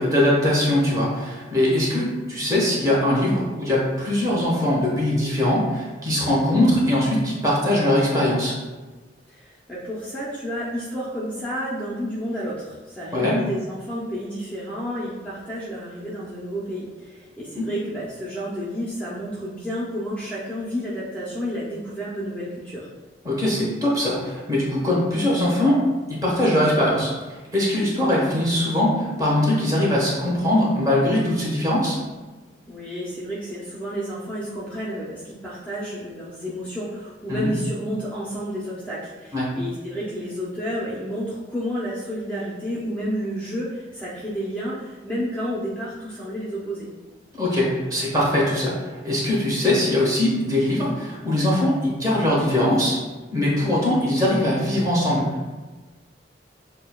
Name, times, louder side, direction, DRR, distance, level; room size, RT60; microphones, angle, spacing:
voice 1, 0.0-8.5 13.1-13.4 17.5-17.6 23.2-25.8 26.1-32.0 37.3-37.5 39.3-39.5 47.3-53.0 53.3-55.5, left 1 dB, 20° right, -6 dB, 1.2 m, -21 dB
voice 2, 9.3-22.9 32.7-46.9, equal, 10° left, -8 dB, 0.6 m, -31 dB
6.4 x 2.2 x 2.3 m, 1.2 s
head